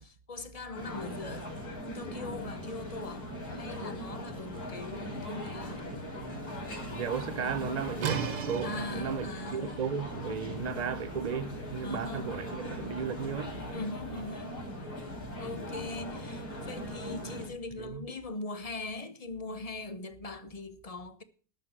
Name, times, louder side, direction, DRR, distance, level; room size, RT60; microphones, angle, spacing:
voice 1, 0.0-1.6 1.9-3.3 3.5-5.9 8.6-9.8 11.8-12.3 13.7-14.6 15.4-21.2, left 3 dB, 30° left, 0.7 m, -41 dB
sound 1, 0.7-17.5, left 1 dB, 60° left, 5.8 m, -40 dB
voice 2, 6.6-13.6 17.8-18.0, right 6 dB, 55° right, 0.4 m, -35 dB
sound 2, 8.0-13.6, right 7 dB, 75° right, 2.0 m, -39 dB
12.5 x 6.7 x 7.4 m
omnidirectional pair, 1.9 m